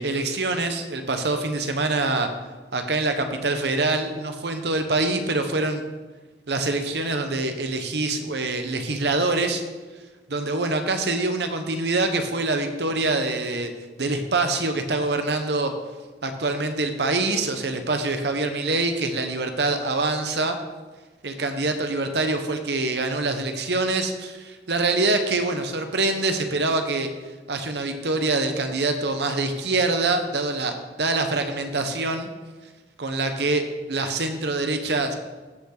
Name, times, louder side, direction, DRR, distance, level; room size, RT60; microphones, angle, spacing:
voice 1, 0.0-2.3 2.7-5.8 6.5-9.6 10.3-13.7 14.0-15.7 16.2-20.6 21.2-27.1 27.5-32.3 33.0-35.1, right 2 dB, 70° right, 6 dB, 1.0 m, -25 dB
15.0 x 5.6 x 4.0 m, 1.3 s
head